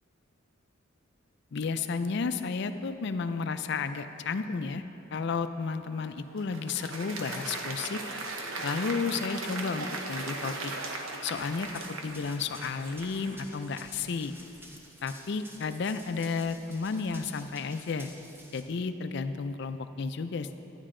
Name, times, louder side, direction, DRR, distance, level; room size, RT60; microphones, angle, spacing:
voice 1, 1.5-4.8 5.1-8.0 8.6-10.7 11.2-14.3 15.0-18.1 18.5-20.5, left 4 dB, 55° left, 10 dB, 0.4 m, -32 dB
Applause, 6.0-13.6, right 2 dB, 80° right, 0.9 m, -38 dB
Run, 11.4-18.6, equal, 10° right, 0.8 m, -51 dB
12.0 x 9.8 x 3.7 m, 2.9 s
head